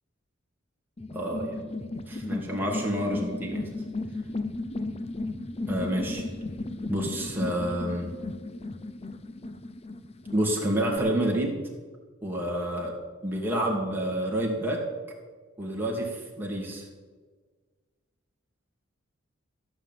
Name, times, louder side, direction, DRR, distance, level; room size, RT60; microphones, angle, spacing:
sound 1, 1.0-11.0, left 2 dB, 30° left, 0.6 m, -35 dB
voice 1, 1.1-1.6 2.1-3.7 5.7-6.3 6.9-8.1 10.3-11.6 12.2-12.9 13.2-14.8 15.6-16.8, right 1 dB, 10° right, -2 dB, 2.7 m, -28 dB
15.0 x 6.3 x 9.2 m, 1.5 s
head